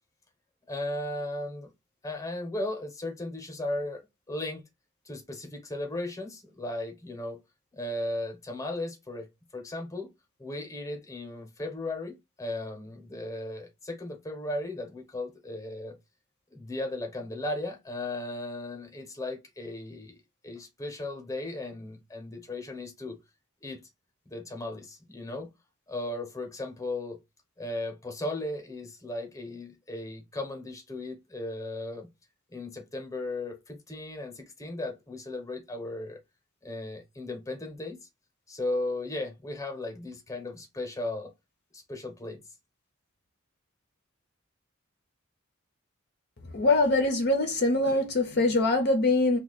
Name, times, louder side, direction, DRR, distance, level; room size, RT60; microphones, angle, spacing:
voice 1, 0.7-1.7 2.0-4.0 4.3-4.6 5.0-7.4 7.8-10.1 10.4-16.0 16.5-20.2 20.4-23.2 23.6-23.8 24.3-25.5 25.9-27.2 27.6-32.1 32.5-36.2 36.6-38.0 38.5-41.3 41.7-42.4, left 2 dB, 15° left, 1.0 m, -36 dB
voice 2, 46.5-49.4, left 2 dB, 50° left, 0.7 m, -23 dB
2.7 x 2.3 x 3.9 m
head